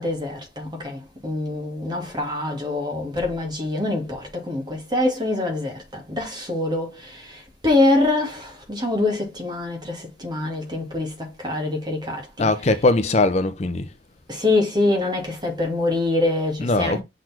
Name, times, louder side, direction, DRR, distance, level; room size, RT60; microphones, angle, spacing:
voice 1, 0.0-12.5 14.3-17.0, left 2 dB, 25° right, 2.3 m, -25 dB
voice 2, 12.4-13.9 16.6-17.0, left 2 dB, 35° left, 0.6 m, -20 dB
6.2 x 4.1 x 4.3 m
head